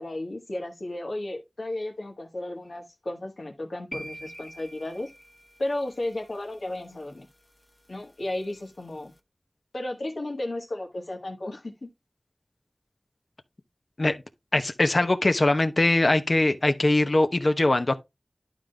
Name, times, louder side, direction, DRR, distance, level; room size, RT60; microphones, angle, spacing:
voice 1, 0.0-5.1 5.6-7.3 7.9-9.1 9.7-11.9, left 1 dB, 80° left, 1.7 m, -34 dB
sound 1, 3.9-6.0, equal, 40° left, 1.4 m, -43 dB
voice 2, 14.5-18.0, left 2 dB, 65° left, 0.9 m, -22 dB
11.5 x 3.9 x 3.4 m
wide cardioid pair, 40°, 0 cm